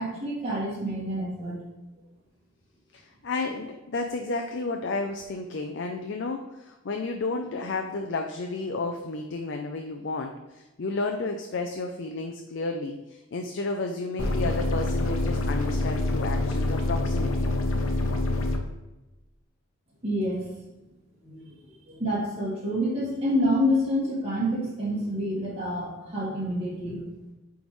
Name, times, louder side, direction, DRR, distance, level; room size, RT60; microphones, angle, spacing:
voice 1, 0.0-1.6 20.0-20.4 21.2-21.5 21.9-27.0, equal, 30° right, -6 dB, 1.7 m, -27 dB
voice 2, 2.9-17.5, left 3 dB, 55° left, 3 dB, 0.5 m, -32 dB
sound 1, 14.2-18.6, left 2 dB, 80° left, 0.8 m, -26 dB
9.1 x 3.6 x 3.1 m, 1.1 s
head